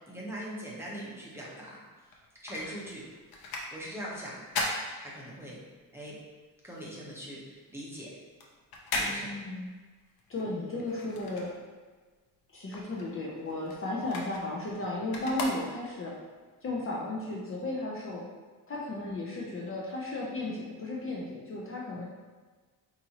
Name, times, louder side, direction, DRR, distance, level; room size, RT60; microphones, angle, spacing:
voice 1, 0.0-1.8 2.4-3.1 3.7-4.3 5.0-5.6 5.9-6.2 6.6-8.1 8.9-9.3 10.5-10.7 18.9-19.1, equal, 5° right, -6 dB, 1.0 m, -41 dB
sound 1, 2.0-5.7 6.1-12.1 12.4-16.2 16.7-16.8, left 2 dB, 70° left, 0.8 m, -38 dB
voice 2, 8.9-9.7 10.3-11.5 12.5-16.1 16.6-18.2 18.7-22.0, left 2 dB, 35° left, -4 dB, 0.7 m, -35 dB
5.1 x 2.8 x 3.0 m, 1.4 s
cardioid pair, 115°, 37 cm